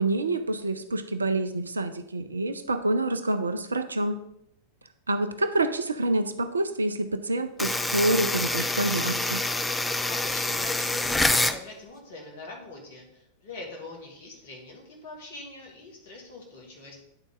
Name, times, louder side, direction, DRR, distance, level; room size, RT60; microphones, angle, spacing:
voice 1, 0.0-4.2 5.1-9.4, right 2 dB, 75° right, 10 dB, 0.5 m, -27 dB
sound 1, 7.6-11.6, left 2 dB, 10° left, 0.4 m, -26 dB
voice 2, 9.9-17.0, left 2 dB, 55° left, 0 dB, 2.0 m, -43 dB
9.8 x 3.9 x 3.6 m, 0.76 s
figure-of-eight pair, 90°, 0 cm